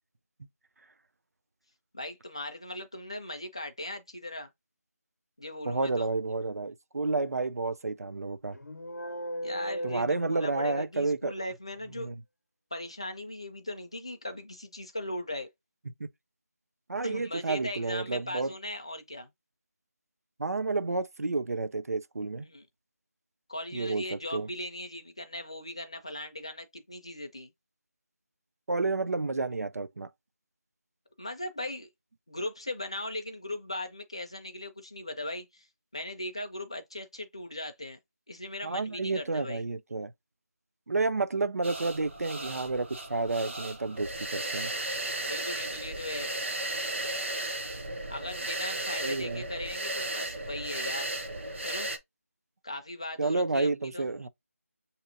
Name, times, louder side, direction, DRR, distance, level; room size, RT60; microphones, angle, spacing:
voice 1, 1.9-4.5 5.4-6.1 9.4-12.1 12.7-15.5 17.0-19.3 22.4-22.7 23.5-27.5 31.2-31.9 32.3-35.7 35.9-38.0 38.3-39.6 45.3-46.3 48.1-51.1 51.6-51.9 52.6-54.1, left 1 dB, 20° left, 0.3 m, -38 dB
voice 2, 5.7-8.6 9.8-11.3 12.0-12.1 16.0-16.1 16.9-18.5 20.4-22.5 23.7-24.5 28.7-30.1 38.6-40.1 40.9-44.7 49.0-49.4 53.2-54.3, right 3 dB, 75° right, 0.4 m, -30 dB
sound 1, 8.5-11.1, equal, 85° left, 0.6 m, -38 dB
sound 2, 41.6-52.0, right 1 dB, 50° right, 0.8 m, -35 dB
6.4 x 2.8 x 2.5 m
figure-of-eight pair, 175°, 8 cm